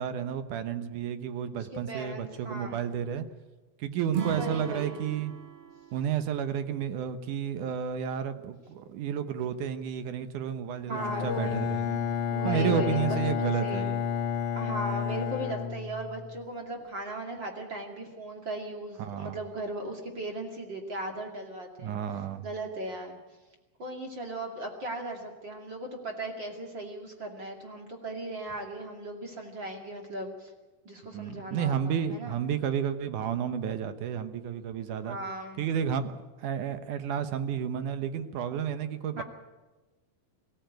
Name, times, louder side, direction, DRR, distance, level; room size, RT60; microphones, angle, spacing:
voice 1, 0.0-3.3 3.8-5.3 5.9-11.7 12.5-14.0 19.0-19.4 21.8-22.4 31.1-35.2 35.6-36.1 36.4-39.2, right 8 dB, 70° right, 10 dB, 2.3 m, -31 dB
voice 2, 1.5-2.9 4.3-5.0 10.9-12.0 12.3-13.9 14.5-23.2 23.8-30.5 30.8-32.4 35.0-35.7 39.2-39.3, right 1 dB, 35° right, 2 dB, 2.7 m, -37 dB
Acoustic guitar / Strum, 4.1-7.4, right 10 dB, 50° right, 2.2 m, -38 dB
Bowed string instrument, 10.9-16.4, left 8 dB, 65° left, 1.6 m, -31 dB
23.0 x 15.5 x 9.2 m, 1.2 s
omnidirectional pair, 4.2 m